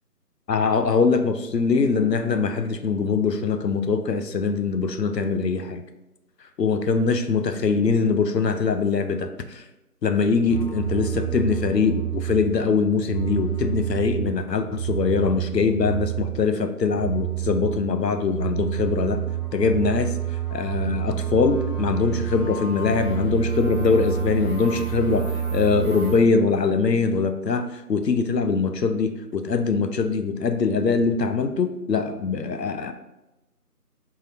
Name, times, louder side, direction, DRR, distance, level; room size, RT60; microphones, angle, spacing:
voice 1, 0.5-5.8 6.6-9.6 10.0-19.2 19.5-20.1 20.5-32.9, left 4 dB, 85° left, 8 dB, 0.6 m, -22 dB
sound 1, 10.5-12.7 13.0-16.5 16.8-26.2, right 9 dB, 55° right, 1.3 m, -29 dB
3.8 x 2.6 x 4.2 m, 0.96 s
figure-of-eight pair, 175°, 48 cm